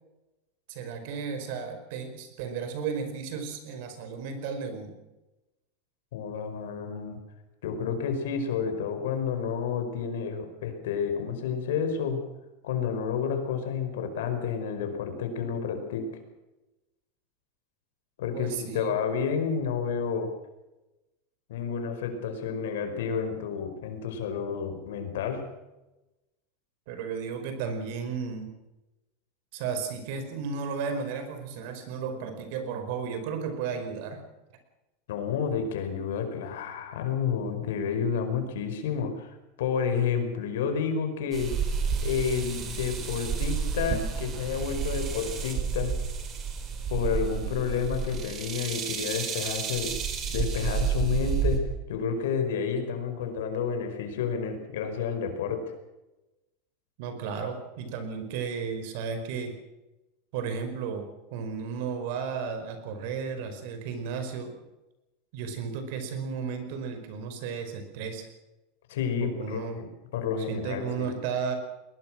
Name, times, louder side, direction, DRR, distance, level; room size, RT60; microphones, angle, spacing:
voice 1, 0.7-4.9 18.3-18.9 26.9-28.6 29.5-34.2 57.0-59.6 60.3-64.6 65.3-68.3 69.2-69.8 70.5-71.6, right 6 dB, 65° right, 8 dB, 5.1 m, -34 dB
voice 2, 6.1-7.2 7.6-12.2 12.6-16.2 18.2-20.3 21.5-25.4 35.1-41.5 42.0-45.9 46.9-50.0 50.3-51.6 51.9-55.6 68.9-71.1, left 6 dB, 85° left, 6 dB, 5.0 m, -30 dB
sound 1, 41.3-51.6, right 6 dB, 30° right, 4.2 m, -30 dB
21.0 x 20.0 x 6.2 m, 1.0 s
supercardioid pair, 140°, 0 cm